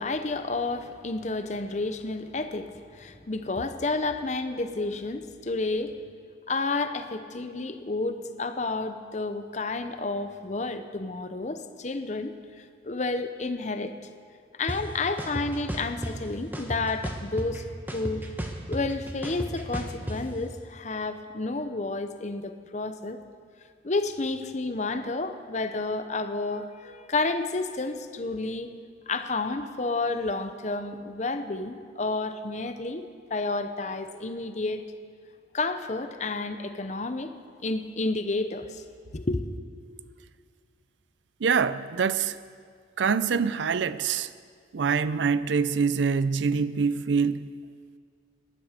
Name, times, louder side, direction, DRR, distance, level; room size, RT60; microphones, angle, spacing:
voice 1, 0.0-5.9 6.5-13.9 14.6-17.6 17.9-18.2 18.7-23.2 23.8-28.7 29.1-34.8 35.5-37.3 37.6-38.8 39.1-39.5, left 3 dB, 40° left, 0.7 m, -30 dB
sound 1, 14.7-14.8 15.2-16.1 16.5-17.6 17.9-20.2, equal, 10° right, 1.0 m, -33 dB
voice 2, 41.4-42.4 43.0-44.3 44.7-47.5, right 5 dB, 75° right, 0.5 m, -25 dB
18.5 x 11.0 x 5.1 m
head